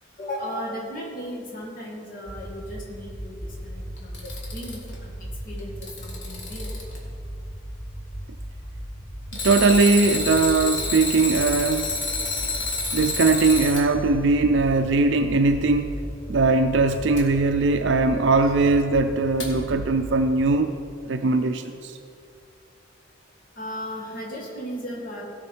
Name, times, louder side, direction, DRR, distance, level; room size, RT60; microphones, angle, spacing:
voice 1, 0.2-6.7 23.6-25.2, equal, 45° left, -4 dB, 1.9 m, -36 dB
sound 1, 2.3-20.5, equal, ahead, 2.9 m, -37 dB
Alarm, 4.0-4.9 5.6-7.0 9.3-13.8 17.2-17.3 19.4-19.5, left 3 dB, 65° left, 1.9 m, -28 dB
voice 2, 9.4-11.9 12.9-16.0 16.3-20.7 21.1-22.0, right 3 dB, 65° right, 7 dB, 0.4 m, -20 dB
17.0 x 6.1 x 4.5 m, 2.6 s
head